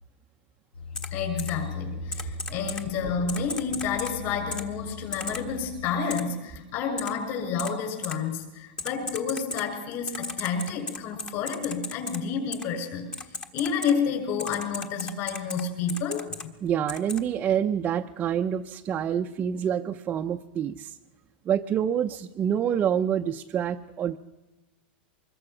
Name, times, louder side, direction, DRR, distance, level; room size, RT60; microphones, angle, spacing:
sound 1, 0.7-5.9, left 4 dB, 85° left, 4.9 m, -39 dB
Typing, 0.9-1.1 1.4-1.5 2.1-2.8 3.3-4.1 4.5-4.6 5.1-5.4 6.1-6.2 7.0-7.1 7.6-7.7 8.0-8.1 8.8-9.6 10.1-12.2 12.5-12.6 13.1-13.9 14.4-15.6 15.9-16.4 16.9-17.2, left 3 dB, 15° left, 1.3 m, -34 dB
voice 1, 1.1-13.1 13.5-16.5, left 6 dB, 45° left, 4 dB, 6.7 m, -30 dB
voice 2, 16.6-21.0 21.5-24.2, right 9 dB, 25° right, 3 dB, 0.7 m, -27 dB
24.5 x 22.0 x 6.1 m, 1.1 s
supercardioid pair, 145°, 6 cm